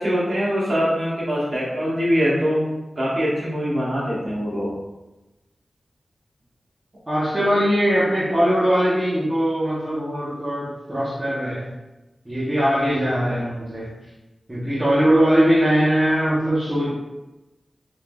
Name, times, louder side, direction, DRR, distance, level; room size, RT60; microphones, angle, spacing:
voice 1, 0.0-4.7, equal, 55° right, -7 dB, 1.3 m, -23 dB
voice 2, 7.1-11.7 12.2-13.9 14.5-16.9, equal, 15° right, -9 dB, 0.9 m, -20 dB
3.6 x 3.2 x 2.3 m, 1.0 s
wide cardioid pair, 105°, 0 cm